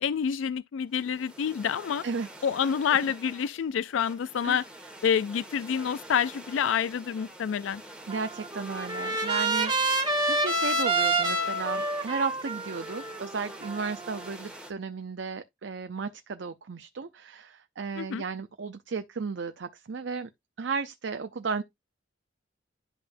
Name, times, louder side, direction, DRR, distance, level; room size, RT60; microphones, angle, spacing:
voice 1, 0.0-2.0 2.4-4.6 5.0-7.8 18.0-18.2, left 7 dB, 80° left, 0.3 m, -28 dB
sound 1, 0.9-14.7, right 1 dB, 5° right, 1.6 m, -47 dB
voice 2, 2.0-2.5 4.4-4.6 8.1-20.3 20.6-21.6, right 4 dB, 65° right, 0.5 m, -34 dB
Trumpet, 8.1-14.3, right 2 dB, 25° right, 1.8 m, -28 dB
10.5 x 5.6 x 2.5 m
head